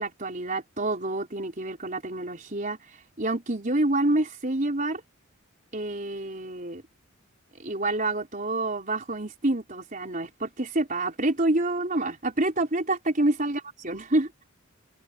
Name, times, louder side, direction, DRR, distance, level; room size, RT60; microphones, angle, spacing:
voice 1, 0.0-2.8 3.2-5.0 5.7-6.8 7.6-14.3, right 2 dB, 40° right, 4.5 m, -27 dB
head